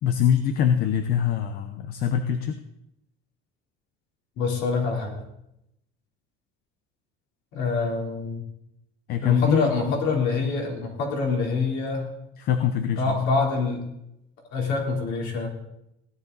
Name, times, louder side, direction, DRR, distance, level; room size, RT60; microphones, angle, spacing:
voice 1, 0.0-2.6 9.1-10.3 12.4-13.1, left 9 dB, 50° left, 8 dB, 0.8 m, -24 dB
voice 2, 4.4-5.2 7.5-8.4 9.2-12.1 13.0-13.8 14.5-15.5, left 4 dB, 65° left, 0 dB, 3.7 m, -25 dB
17.0 x 11.0 x 4.0 m, 0.83 s
cardioid pair, 155°, 20 cm